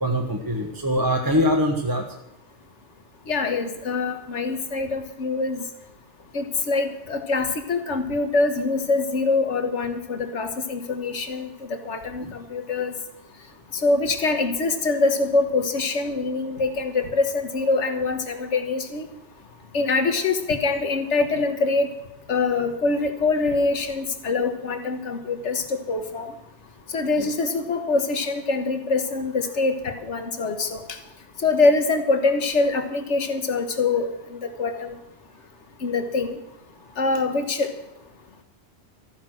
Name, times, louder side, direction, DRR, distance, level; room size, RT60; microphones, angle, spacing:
voice 1, 0.0-2.1 12.2-12.3 27.2-27.3, equal, 20° right, 1 dB, 1.4 m, -23 dB
voice 2, 3.3-5.6 6.3-12.9 13.7-19.1 19.7-21.9 22.3-26.3 26.9-31.0 31.4-35.0 35.8-36.4 37.0-37.7, left 3 dB, 85° left, 6 dB, 1.7 m, -24 dB
14.0 x 10.5 x 6.2 m, 0.90 s
omnidirectional pair, 1.2 m